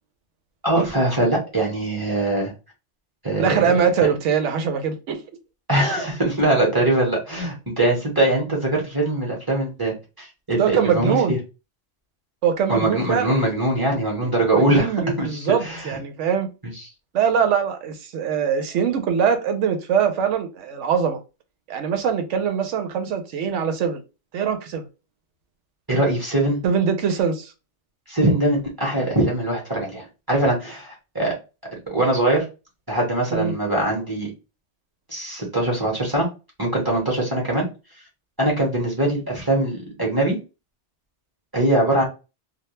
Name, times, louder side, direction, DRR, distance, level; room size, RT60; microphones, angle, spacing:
voice 1, 0.6-2.5 3.2-3.5 4.0-4.1 5.7-11.4 12.7-14.9 15.2-16.0 25.9-26.6 28.1-31.3 31.9-32.4 32.9-34.3 35.1-36.3 36.6-37.7 38.4-40.4 41.5-42.0, right 1 dB, 20° right, 0.8 m, -22 dB
voice 2, 3.4-5.2 10.6-11.4 12.4-13.4 14.2-16.5 17.1-21.2 21.7-24.0 24.3-24.8 26.6-27.5 33.3-33.6, right 7 dB, 85° right, 0.9 m, -22 dB
2.2 x 2.1 x 3.0 m
omnidirectional pair, 1.2 m